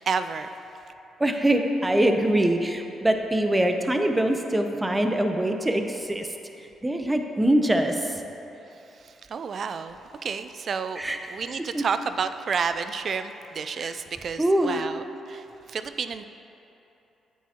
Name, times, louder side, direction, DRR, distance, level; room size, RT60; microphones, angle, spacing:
voice 1, 0.1-0.5 9.0-11.0 11.3-16.2, right 5 dB, 55° right, 10 dB, 0.3 m, -30 dB
voice 2, 1.2-6.3 6.8-8.1 11.0-11.2 11.7-11.8 13.8-13.9 14.4-14.8, right 1 dB, 15° right, 5 dB, 0.7 m, -23 dB
9.0 x 7.4 x 2.9 m, 3.0 s
hypercardioid pair, 50°, 0 cm